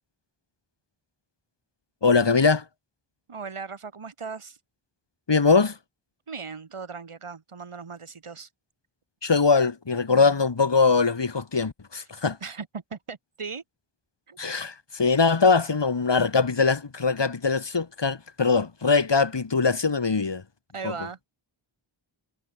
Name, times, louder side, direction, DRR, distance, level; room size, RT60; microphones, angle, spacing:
voice 1, 2.0-2.6 5.3-5.8 9.2-12.4 14.4-20.4 20.8-20.9, left 4 dB, 55° left, 4.4 m, -22 dB
voice 2, 3.3-4.6 6.3-8.5 10.1-10.4 12.4-13.6 14.3-14.4 20.7-21.2, right 5 dB, 90° right, 7.5 m, -38 dB
wide cardioid pair, 85°, 49 cm